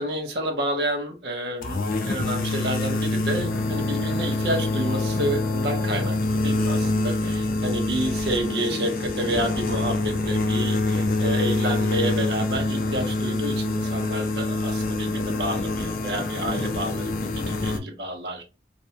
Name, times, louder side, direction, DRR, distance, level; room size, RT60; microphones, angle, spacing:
voice 1, 0.0-18.4, right 1 dB, 70° right, 0.8 m, -29 dB
sound 1, 1.6-17.8, left 2 dB, 50° left, 0.4 m, -25 dB
2.6 x 2.1 x 2.7 m
head